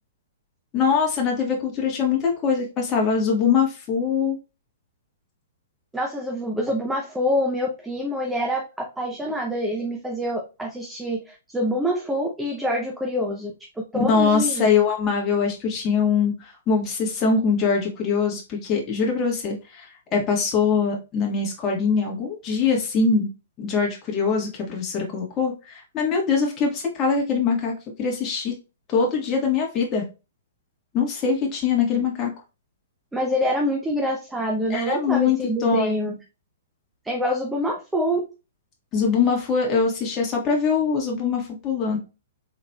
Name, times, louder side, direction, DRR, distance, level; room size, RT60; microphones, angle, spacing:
voice 1, 0.7-4.4 14.1-23.3 23.6-27.7 28.0-28.5 28.9-30.0 30.9-32.3 34.7-36.1 38.9-42.0, left 5 dB, 25° left, 0 dB, 1.5 m, -23 dB
voice 2, 5.9-8.6 9.0-13.5 13.9-14.7 33.1-36.1 37.0-38.2, equal, 5° right, 0 dB, 0.7 m, -26 dB
4.2 x 3.8 x 2.3 m, 0.29 s
figure-of-eight pair, 115°, 0 cm